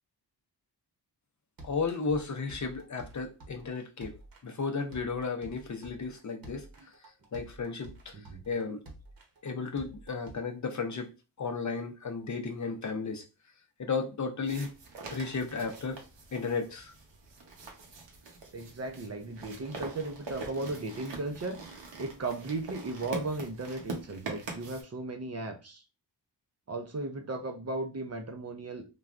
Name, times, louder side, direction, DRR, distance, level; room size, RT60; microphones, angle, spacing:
voice 1, 1.6-4.2 4.4-6.6 7.3-8.2 8.5-8.8 9.4-11.1 11.4-13.2 13.8-14.7 15.1-16.0 16.3-16.9, left 4 dB, 45° left, 0.6 m, -34 dB
sound 1, 1.6-10.3, right 1 dB, 55° right, 0.9 m, -50 dB
sound 2, 14.4-24.8, right 3 dB, 85° right, 0.8 m, -44 dB
voice 2, 18.5-25.8 26.7-28.9, right 2 dB, 40° right, 0.5 m, -36 dB
3.3 x 2.3 x 2.4 m
cardioid pair, 70°, 42 cm